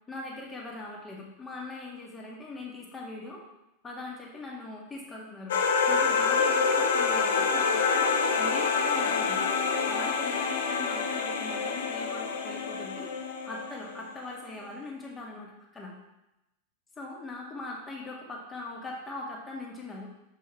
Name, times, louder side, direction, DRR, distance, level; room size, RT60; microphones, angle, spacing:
voice 1, 0.1-3.4 3.8-9.4 9.9-13.1 13.4-15.9 17.0-20.1, left 2 dB, 15° left, -2 dB, 1.9 m, -41 dB
sound 1, 5.5-14.1, left 5 dB, 60° left, 0.7 m, -27 dB
7.2 x 5.5 x 3.3 m, 0.90 s
figure-of-eight pair, 90°, 0 cm